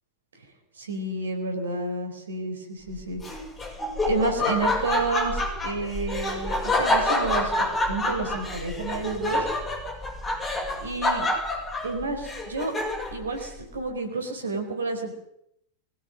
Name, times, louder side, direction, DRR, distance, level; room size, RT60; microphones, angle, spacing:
voice 1, 0.8-3.2 4.0-9.5 10.8-11.3 11.8-12.7 13.1-15.1, right 3 dB, 70° right, 5 dB, 4.3 m, -30 dB
Laughter, 3.2-13.2, left 2 dB, 15° left, 6.0 m, -27 dB
22.5 x 16.0 x 7.7 m, 0.76 s
figure-of-eight pair, 90°, 0 cm